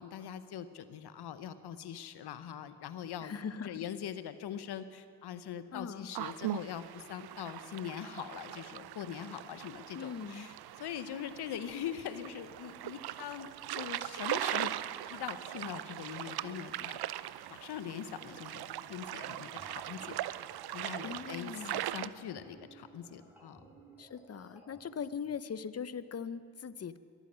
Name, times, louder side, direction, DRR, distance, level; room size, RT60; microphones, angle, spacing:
voice 1, 0.0-3.3 3.6-14.7 15.1-17.0 17.5-20.2 20.7-23.6, left 9 dB, 80° left, 12 dB, 0.9 m, -42 dB
voice 2, 3.2-3.9 5.7-6.1 9.9-10.5 21.0-21.8 24.0-27.0, left 6 dB, 40° left, 15 dB, 0.7 m, -41 dB
sound 1, 6.1-22.1, right 13 dB, 70° right, 0.5 m, -40 dB
sound 2, 18.1-25.2, right 2 dB, 5° right, 4.1 m, -58 dB
22.5 x 9.1 x 6.3 m, 2.4 s
supercardioid pair, 40°, 39 cm